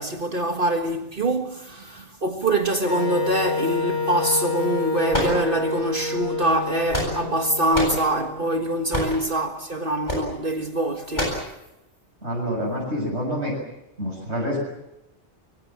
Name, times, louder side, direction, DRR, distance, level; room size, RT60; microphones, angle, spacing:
voice 1, 0.0-11.3, right 1 dB, 50° right, 1.9 m, -24 dB
Wind instrument woodwind instrument, 2.9-8.7, left 3 dB, 80° left, 4.2 m, -28 dB
sound 1, 5.1-5.9 6.6-7.4 7.7-8.0 8.9-9.2 10.1-10.3 11.1-11.5, equal, 40° left, 8.3 m, -26 dB
voice 2, 12.2-13.6 14.0-14.6, equal, 75° right, 7.2 m, -27 dB
25.0 x 23.0 x 7.5 m
omnidirectional pair, 1.2 m